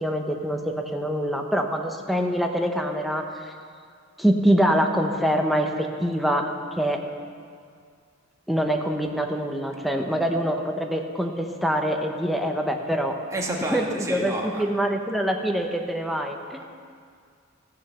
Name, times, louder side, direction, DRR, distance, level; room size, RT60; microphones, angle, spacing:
voice 1, 0.0-3.5 4.2-6.5 6.8-7.0 8.5-13.2 13.6-16.6, equal, ahead, 2 dB, 0.9 m, -25 dB
voice 2, 13.3-14.6, right 1 dB, 15° right, -1 dB, 1.5 m, -29 dB
14.5 x 6.7 x 6.8 m, 2.2 s
head